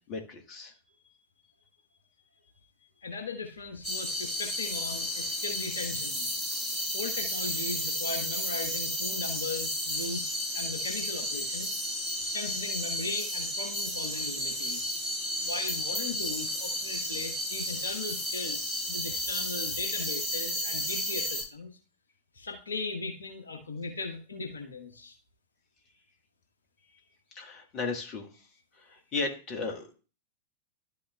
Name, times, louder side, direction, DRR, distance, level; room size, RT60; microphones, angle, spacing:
voice 1, 0.1-0.7 27.3-28.3 28.8-29.9, left 4 dB, 35° left, 4 dB, 1.4 m, -35 dB
voice 2, 3.0-6.3 6.9-11.7 12.2-14.9 15.4-21.7 22.3-25.1, left 3 dB, 75° left, 4 dB, 1.2 m, -38 dB
sound 1, 3.8-21.4, equal, 10° left, 4.6 m, -33 dB
11.5 x 5.6 x 2.3 m, 0.35 s
figure-of-eight pair, 90°, 0 cm